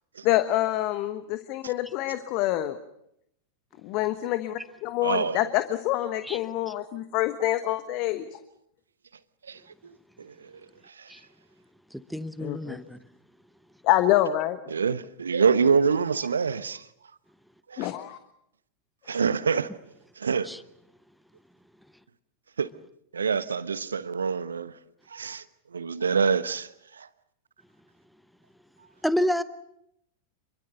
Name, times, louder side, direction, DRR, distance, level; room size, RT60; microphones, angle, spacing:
voice 1, 0.2-2.8 3.8-8.4 12.4-12.8 13.8-14.6 17.8-18.2, left 14 dB, 40° left, 1.2 m, -26 dB
voice 2, 5.0-5.4 9.5-9.6 10.2-10.3 11.0-11.1 14.7-16.8 17.7-17.9 19.1-19.7 20.2-20.5 22.6-22.7 23.1-24.7 25.1-25.4 25.7-26.7 27.0-27.1, right 5 dB, 70° right, 1.0 m, -25 dB
voice 3, 11.9-13.0 20.4-20.6 29.0-29.4, equal, ahead, 1.0 m, -29 dB
27.5 x 23.0 x 6.8 m
figure-of-eight pair, 90°, 0 cm